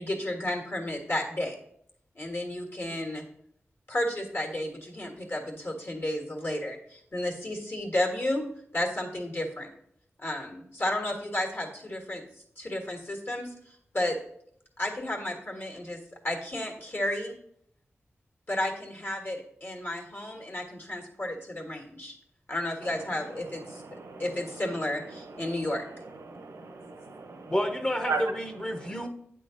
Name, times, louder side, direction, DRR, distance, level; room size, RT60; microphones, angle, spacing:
voice 1, 0.0-1.6 2.1-3.2 3.9-8.5 8.7-9.7 10.2-12.2 12.6-13.5 13.9-14.2 14.8-16.0 16.2-17.3 18.5-22.1 22.5-23.8 24.2-25.8, left 1 dB, 50° left, 1 dB, 1.6 m, -32 dB
voice 2, 23.7-24.2 25.4-25.5 26.3-27.5 28.1-28.2 28.7-28.9, right 4 dB, 85° right, 6 dB, 0.9 m, -36 dB
voice 3, 27.5-29.1, equal, 20° left, 5 dB, 0.8 m, -29 dB
9.0 x 3.8 x 3.8 m, 0.68 s
wide cardioid pair, 85°, 5 cm